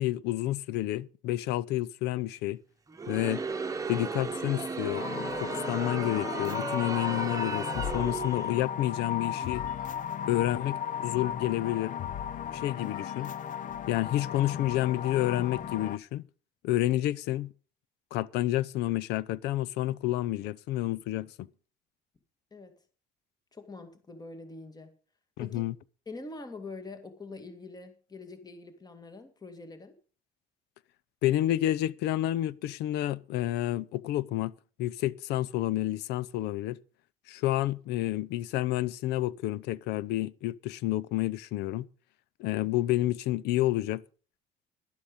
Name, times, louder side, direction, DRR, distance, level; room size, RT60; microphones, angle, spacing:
voice 1, 0.0-2.6 3.1-3.4 3.9-5.0 5.4-9.6 10.2-12.0 12.5-13.3 13.9-16.2 16.6-17.5 18.1-21.5 25.4-25.7 31.2-34.5 34.8-36.8 37.3-41.9 42.4-44.0, left 15 dB, 90° left, 0.6 m, -29 dB
Crowd, 2.9-8.6, right 4 dB, 20° right, 1.1 m, -35 dB
sound 1, 4.9-16.0, left 9 dB, 50° left, 0.7 m, -35 dB
voice 2, 23.5-24.9 25.4-25.6 26.1-30.0, left 3 dB, 25° left, 2.1 m, -44 dB
11.5 x 11.5 x 5.2 m
cardioid pair, 110°, 17 cm